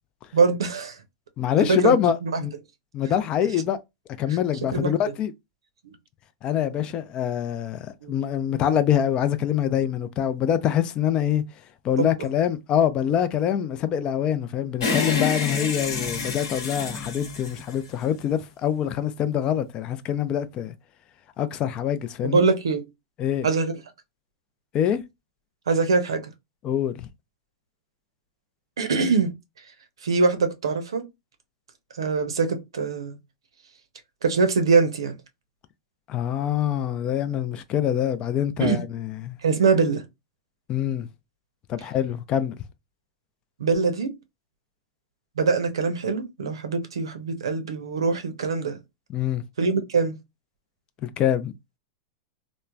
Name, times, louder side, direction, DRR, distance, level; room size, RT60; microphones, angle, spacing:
voice 1, 0.3-1.0 1.7-1.9 2.2-2.4 4.7-4.9 8.0-8.1 12.0-12.1 22.2-22.8 23.4-23.7 25.7-26.3 28.8-29.3 30.0-31.0 32.0-33.2 34.2-35.1 38.6-38.8 39.4-40.0 43.6-44.1 45.4-48.8 49.6-50.2, right 4 dB, 80° right, 0.6 m, -23 dB
voice 2, 1.4-2.5 2.9-3.8 4.2-5.3 6.4-11.4 11.8-20.7 21.4-22.4 23.2-23.5 24.7-25.0 26.6-27.1 36.1-39.4 40.7-41.1 41.7-42.6 49.1-49.4 51.0-51.5, left 9 dB, 35° left, 0.4 m, -25 dB
sound 1, 14.8-18.3, left 4 dB, 70° left, 1.0 m, -28 dB
3.1 x 2.0 x 2.3 m
hypercardioid pair, 100°, 3 cm